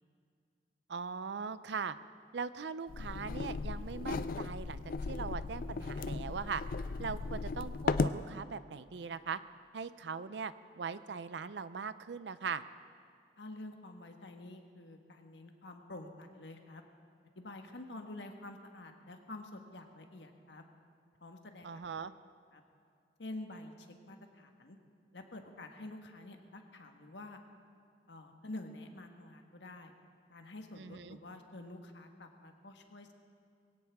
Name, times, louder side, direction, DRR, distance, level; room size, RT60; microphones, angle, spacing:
voice 1, 0.9-2.0 2.3-4.8 5.1-6.6 7.0-9.4 9.7-12.6 21.6-22.1 30.8-31.2, right 5 dB, 70° right, 14 dB, 0.5 m, -40 dB
sound 1, 2.9-8.2, left 4 dB, 50° left, 0.4 m, -36 dB
voice 2, 13.4-16.8 17.3-20.6 21.2-21.7 22.5-22.6 23.2-24.8 25.1-27.4 28.1-29.9 30.3-33.1, left 2 dB, 75° left, 4 dB, 1.5 m, -48 dB
21.5 x 17.0 x 3.6 m, 2.4 s
head